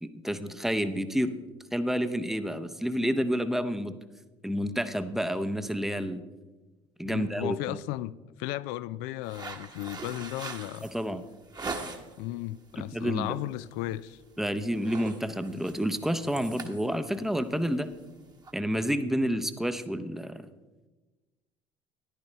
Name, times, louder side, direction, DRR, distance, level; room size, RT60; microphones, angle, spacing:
voice 1, 0.0-1.3 1.7-4.0 4.4-6.2 7.0-7.8 10.9-11.2 12.8-13.3 14.4-17.9 18.5-20.5, equal, ahead, 0.7 m, -29 dB
voice 2, 7.0-10.9 12.2-14.2, left 16 dB, 65° left, 0.4 m, -35 dB
sound 1, 9.2-12.3 12.7-13.1 13.4-13.6 13.9-14.3 14.6-18.5, right 3 dB, 25° right, 1.3 m, -41 dB
14.0 x 10.5 x 3.3 m
hypercardioid pair, 65°, 16 cm